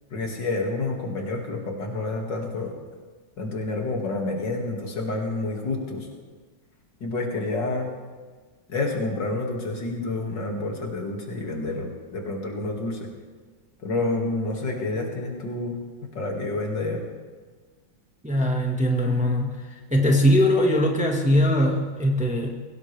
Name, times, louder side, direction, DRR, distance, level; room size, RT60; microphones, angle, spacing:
voice 1, 0.1-2.7 3.4-6.1 7.0-7.9 8.7-13.0 13.8-15.8 16.1-17.0, left 2 dB, 65° left, 0 dB, 2.9 m, -28 dB
voice 2, 18.2-19.6 19.9-22.5, equal, 5° right, 0 dB, 1.4 m, -21 dB
23.0 x 17.0 x 3.4 m, 1.4 s
omnidirectional pair, 2.1 m